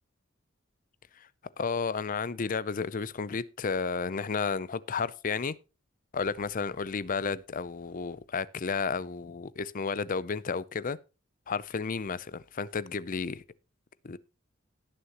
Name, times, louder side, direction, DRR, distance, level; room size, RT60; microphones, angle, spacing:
voice 1, 1.6-5.5 6.1-11.0 11.5-13.4 14.0-14.2, left 5 dB, 40° left, 0.5 m, -32 dB
18.0 x 6.6 x 3.0 m
head